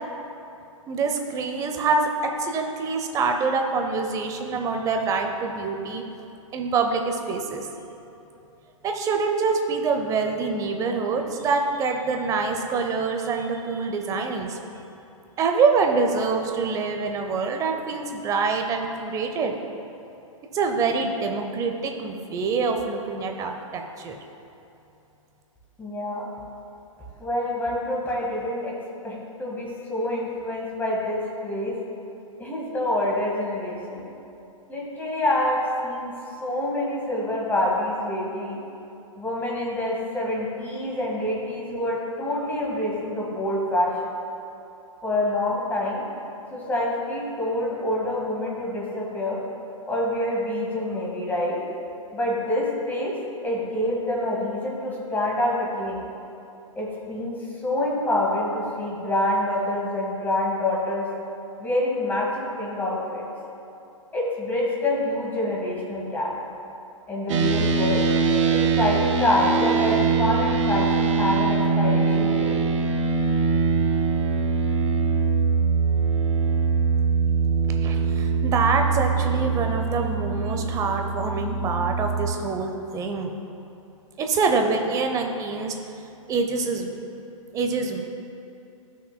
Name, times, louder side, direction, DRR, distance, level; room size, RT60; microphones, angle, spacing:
voice 1, 0.9-2.1 2.4-6.0 6.5-7.7 8.8-14.6 15.4-19.6 20.5-24.2 77.8-83.3 84.2-85.7 86.3-87.0 87.5-88.0, right 4 dB, 20° right, 4 dB, 0.6 m, -25 dB
voice 2, 25.8-26.3 27.2-28.7 29.0-31.8 32.4-34.1 34.7-36.1 36.4-38.6 39.2-44.1 45.0-46.0 46.5-49.4 49.9-51.6 52.1-53.2 53.4-56.0 56.7-57.4 57.6-61.1 61.6-63.2 64.1-66.3 67.1-68.0 68.5-72.6, left 1 dB, 10° left, -4 dB, 1.7 m, -26 dB
sound 1, 67.3-82.3, right 5 dB, 60° right, 0.8 m, -23 dB
14.0 x 6.1 x 2.2 m, 2.9 s
hypercardioid pair, 120°, 18 cm